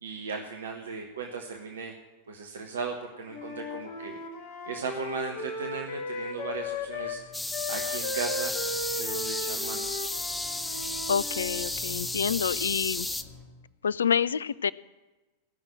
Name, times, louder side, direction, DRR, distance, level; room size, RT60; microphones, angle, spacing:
voice 1, 0.0-1.9 2.3-4.2 4.7-7.2 7.7-8.5 9.0-9.9, right 5 dB, 65° right, 3 dB, 1.2 m, -37 dB
Wind instrument woodwind instrument, 3.3-7.2 7.5-11.7, left 2 dB, 50° left, 1.5 m, -36 dB
sound 1, 6.1-13.5, left 3 dB, 25° left, 4.9 m, -52 dB
sound 2, 7.3-13.2, left 2 dB, 5° left, 0.6 m, -33 dB
voice 2, 11.1-13.1 13.8-14.7, left 7 dB, 70° left, 21 dB, 0.3 m, -27 dB
17.5 x 6.3 x 8.7 m, 1.2 s
figure-of-eight pair, 90°, 0 cm